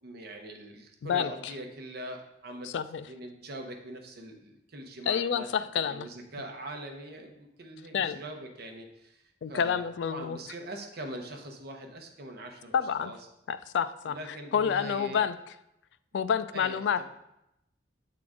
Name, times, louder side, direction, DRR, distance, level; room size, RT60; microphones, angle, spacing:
voice 1, 0.0-2.7 3.1-5.5 5.7-13.2 14.0-15.2 16.5-17.0, right 1 dB, 60° right, 3 dB, 0.8 m, -42 dB
voice 2, 2.6-3.0 5.1-6.1 7.9-8.2 9.4-10.4 12.7-13.1 13.5-14.2 14.5-15.4 16.1-17.0, left 7 dB, 80° left, 13 dB, 0.3 m, -28 dB
7.7 x 3.8 x 3.6 m, 0.84 s
head